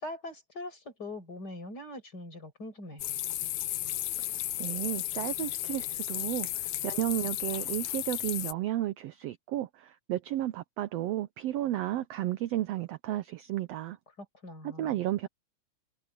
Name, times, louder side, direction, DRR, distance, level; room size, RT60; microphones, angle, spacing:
voice 1, 0.0-3.0 14.2-15.0, left 1 dB, 30° left, 6.7 m, -42 dB
sound 1, 3.0-8.5, left 14 dB, 75° left, 2.1 m, -34 dB
voice 2, 4.6-14.0 14.6-15.3, right 14 dB, 75° right, 1.5 m, -33 dB
omnidirectional pair, 3.6 m